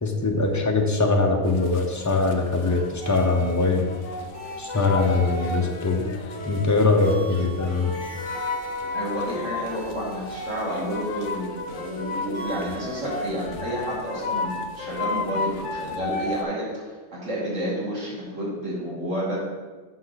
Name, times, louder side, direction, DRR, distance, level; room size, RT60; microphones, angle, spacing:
voice 1, 0.0-3.9 4.6-6.1 6.4-7.9, left 3 dB, 20° left, 2 dB, 0.7 m, -22 dB
sound 1, 1.4-16.4, left 4 dB, 75° left, 1.0 m, -33 dB
sound 2, 3.0-13.7, right 2 dB, 60° right, 2.0 m, -40 dB
voice 2, 8.9-19.4, equal, 80° right, -6 dB, 2.5 m, -30 dB
7.6 x 5.9 x 4.0 m, 1.3 s
omnidirectional pair, 1.3 m